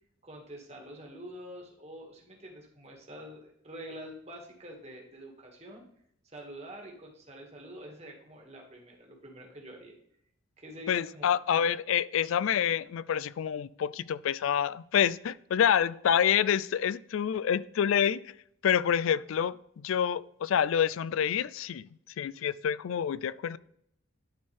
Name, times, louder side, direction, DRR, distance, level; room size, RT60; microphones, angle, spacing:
voice 1, 0.2-5.8 6.2-9.9 10.6-11.3, equal, 30° right, 0 dB, 1.8 m, -46 dB
voice 2, 10.9-18.3 18.6-21.9 22.2-23.6, left 8 dB, 75° left, 19 dB, 0.3 m, -27 dB
11.5 x 4.4 x 3.3 m, 0.72 s
head